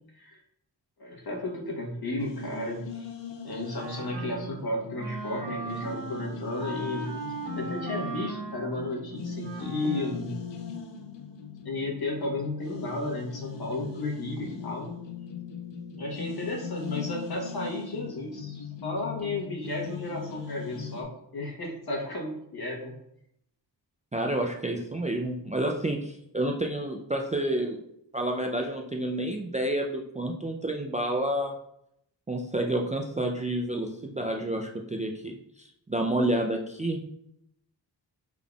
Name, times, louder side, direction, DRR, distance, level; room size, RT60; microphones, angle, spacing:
voice 1, 1.0-3.1 3.4-7.1 7.5-10.4 11.6-14.9 16.0-23.0, left 2 dB, 60° left, -2 dB, 1.1 m, -33 dB
sound 1, 2.2-21.0, left 6 dB, 80° left, 0.6 m, -40 dB
Wind instrument woodwind instrument, 3.7-10.3, right 3 dB, 65° right, 0.8 m, -39 dB
voice 2, 24.1-27.8 28.1-31.5 32.3-37.0, right 1 dB, 20° right, 2 dB, 0.3 m, -29 dB
3.6 x 3.6 x 2.3 m, 0.76 s
cardioid pair, 55°, 43 cm